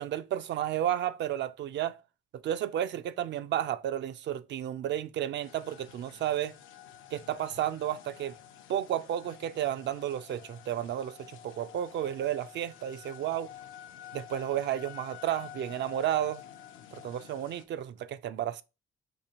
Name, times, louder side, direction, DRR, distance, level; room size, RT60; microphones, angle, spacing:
voice 1, 0.0-2.0 2.3-6.6 7.1-8.4 8.7-13.5 14.1-16.4 16.9-18.6, right 11 dB, 65° right, 0.4 m, -32 dB
sound 1, 5.4-17.6, left 11 dB, 85° left, 0.6 m, -50 dB
5.1 x 2.5 x 2.8 m
cardioid pair, 90°, 20 cm